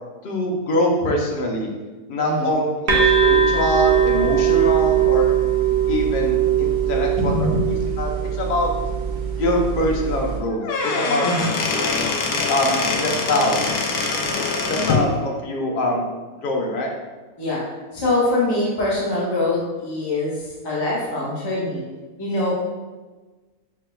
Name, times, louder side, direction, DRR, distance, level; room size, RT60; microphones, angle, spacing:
voice 1, 0.2-1.7 2.1-5.3 5.9-7.5 8.0-8.7 9.4-11.9 12.5-13.6 14.7-16.0 16.4-16.9, left 1 dB, 60° left, 0 dB, 0.5 m, -23 dB
voice 2, 2.2-2.5 7.2-7.8 11.2-11.5 17.4-17.6 17.9-21.8 22.2-22.5, left 2 dB, 20° left, -8 dB, 0.7 m, -23 dB
sound 1, 2.9-10.4, right 8 dB, 50° right, 0.6 m, -20 dB
Squeak / Wood, 10.5-15.1, left 4 dB, 90° left, 1.1 m, -23 dB
5.8 x 2.7 x 2.3 m, 1.3 s
omnidirectional pair, 1.7 m